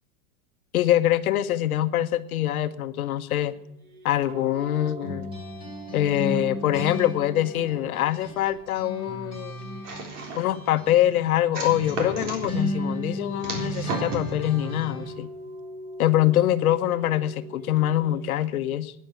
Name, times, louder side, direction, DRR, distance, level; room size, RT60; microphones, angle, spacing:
voice 1, 0.7-3.5 4.0-5.3 5.9-9.6 10.3-15.3 16.0-18.9, left 12 dB, 70° left, 11 dB, 1.1 m, -24 dB
sound 1, 3.3-18.3, equal, 75° right, 5.3 m, -44 dB
sound 2, 5.0-8.5 8.7-15.1, equal, 10° right, 4.9 m, -35 dB
sound 3, 9.8-10.6 11.5-12.5 13.4-14.3, right 2 dB, 55° right, 3.7 m, -34 dB
11.5 x 9.7 x 8.8 m, 0.86 s
supercardioid pair, 170°, 44 cm